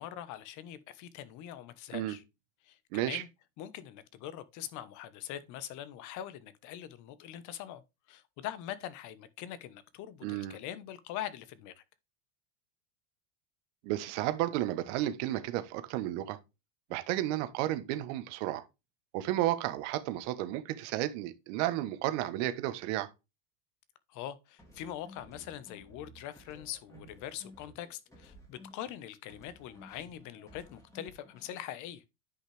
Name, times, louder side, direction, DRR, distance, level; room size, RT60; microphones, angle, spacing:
voice 1, 0.0-2.2 2.6-3.3 3.6-7.8 8.1-11.8 24.1-32.0, left 11 dB, 45° left, 1.2 m, -43 dB
voice 2, 2.9-3.2 10.2-10.6 13.8-16.4 16.9-18.6 19.1-23.1, right 14 dB, 60° right, 1.3 m, -32 dB
sound 1, 24.6-29.0 29.3-31.6, left 1 dB, 10° left, 3.0 m, -55 dB
9.8 x 5.7 x 3.3 m
supercardioid pair, 135°, 41 cm